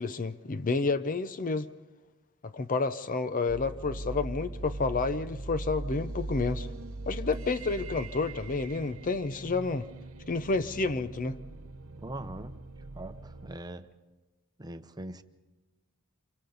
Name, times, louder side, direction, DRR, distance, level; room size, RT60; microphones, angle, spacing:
voice 1, 0.0-1.7 2.4-6.7 7.1-9.9 10.3-11.4, left 3 dB, 40° left, 0.6 m, -30 dB
sound 1, 3.5-13.6, right 2 dB, 70° right, 0.9 m, -40 dB
voice 2, 12.0-12.6 12.9-13.9 14.6-15.2, right 1 dB, 20° right, 0.8 m, -41 dB
28.0 x 24.5 x 4.0 m
head